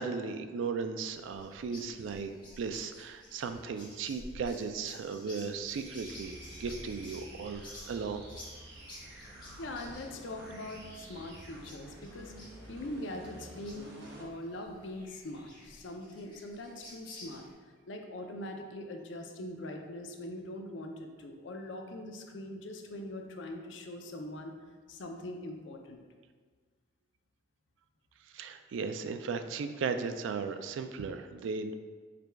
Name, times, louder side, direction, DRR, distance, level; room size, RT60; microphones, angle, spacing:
voice 1, 0.0-2.3 2.6-8.2 28.3-31.7, right 5 dB, 80° right, 9 dB, 0.3 m, -36 dB
sound 1, 1.1-17.5, left 1 dB, 20° left, 1.3 m, -52 dB
sound 2, 5.7-14.3, right 1 dB, 60° right, 0.8 m, -50 dB
voice 2, 9.6-12.3 12.7-17.4 17.9-24.5 24.9-26.0, left 1 dB, 70° left, 3 dB, 0.5 m, -42 dB
4.9 x 2.2 x 4.5 m, 1.5 s
head